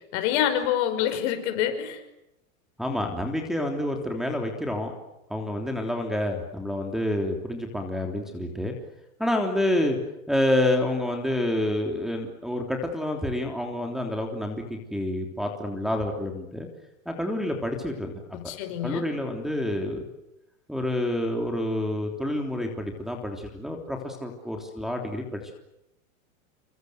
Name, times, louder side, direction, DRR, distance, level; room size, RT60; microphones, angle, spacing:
voice 1, 0.1-2.0 18.3-19.0, left 10 dB, 55° left, 8 dB, 5.7 m, -26 dB
voice 2, 2.8-4.9 5.3-8.7 9.2-10.0 10.3-16.7 17.0-18.5 18.8-20.1 20.7-25.5, left 1 dB, ahead, 1 dB, 3.3 m, -28 dB
28.5 x 24.5 x 8.0 m, 0.88 s
supercardioid pair, 140°, 42 cm